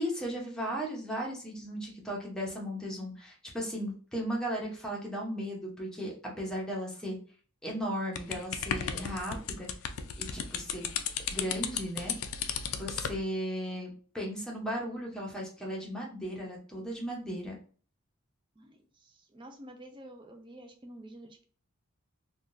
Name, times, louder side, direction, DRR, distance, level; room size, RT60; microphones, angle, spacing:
voice 1, 0.0-7.2 7.6-9.7 10.2-10.9 11.3-12.2 12.7-17.6, equal, 5° left, -2 dB, 0.8 m, -36 dB
sound 1, 8.2-13.2, left 7 dB, 75° left, 0.4 m, -35 dB
voice 2, 18.6-21.4, right 1 dB, 20° right, 4 dB, 0.4 m, -49 dB
3.6 x 2.3 x 2.5 m, 0.42 s
head